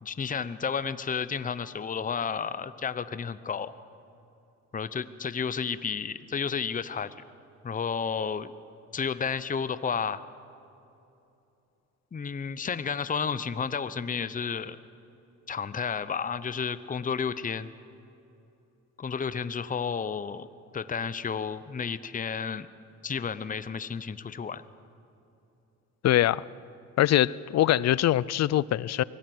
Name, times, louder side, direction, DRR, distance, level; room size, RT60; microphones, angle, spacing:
voice 1, 0.0-3.7 4.7-7.1 7.6-8.5 8.9-10.2 12.1-14.8 15.5-17.7 19.0-20.5 20.7-22.7 23.0-24.6, left 6 dB, 25° left, 14 dB, 0.8 m, -31 dB
voice 2, 26.0-26.4 27.0-29.0, left 13 dB, 60° left, 21 dB, 0.6 m, -23 dB
24.5 x 17.0 x 7.9 m, 2.8 s
cardioid pair, 90°, 30 cm